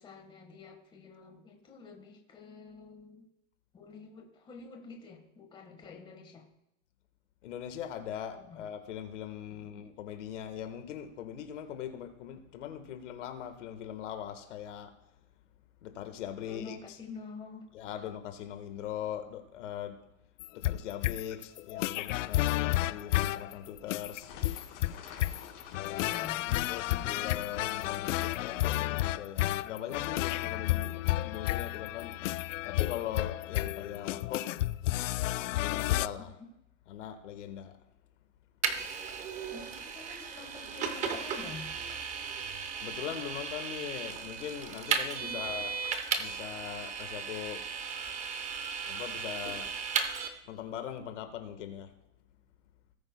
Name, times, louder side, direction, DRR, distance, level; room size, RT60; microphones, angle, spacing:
voice 1, 0.0-3.2 3.7-6.4 8.4-8.6 9.6-9.7 16.4-17.7 18.0-18.1 26.0-27.2 36.4-36.5 39.5-41.7 45.2-45.4, left 4 dB, 15° left, 1.4 m, -48 dB
voice 2, 7.4-15.0 15.8-17.0 17.7-20.0 20.5-24.3 26.6-32.3 32.6-34.5 35.4-36.3 36.9-37.8 38.7-38.9 42.8-45.7 46.2-47.6 48.9-49.7 50.4-51.9, left 10 dB, 70° left, 1.4 m, -41 dB
sound 1, 20.4-36.1, left 16 dB, 90° left, 0.5 m, -31 dB
sound 2, 23.3-28.4, left 6 dB, 50° left, 4.2 m, -51 dB
Vehicle, 38.6-50.3, right 6 dB, 20° right, 0.8 m, -36 dB
18.5 x 8.9 x 2.2 m
supercardioid pair, 160°, 37 cm